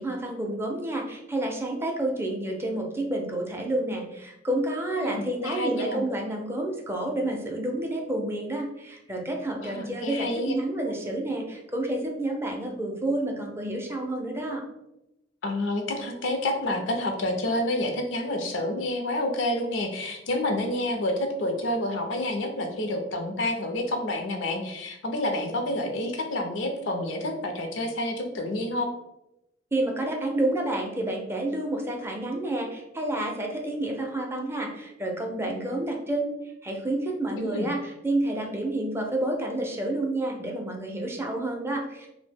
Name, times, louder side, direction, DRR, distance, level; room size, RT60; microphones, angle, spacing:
voice 1, 0.0-14.6 29.7-36.3 36.6-42.1, right 1 dB, 15° right, 1 dB, 0.4 m, -29 dB
voice 2, 5.0-6.1 9.6-10.5 15.4-28.9 37.4-37.7, left 1 dB, 85° left, 4 dB, 0.5 m, -29 dB
2.6 x 2.0 x 3.3 m, 0.88 s
head